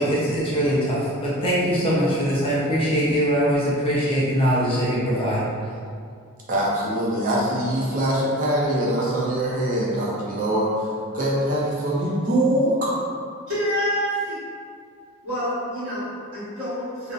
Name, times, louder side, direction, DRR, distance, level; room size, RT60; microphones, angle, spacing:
voice 1, 0.0-5.5, equal, 25° left, -8 dB, 0.4 m, -22 dB
voice 2, 6.5-13.0, right 1 dB, 40° right, -5 dB, 0.5 m, -23 dB
voice 3, 13.5-14.4 15.2-17.1, equal, 85° right, -14 dB, 1.1 m, -27 dB
2.6 x 2.0 x 2.4 m, 2.3 s
head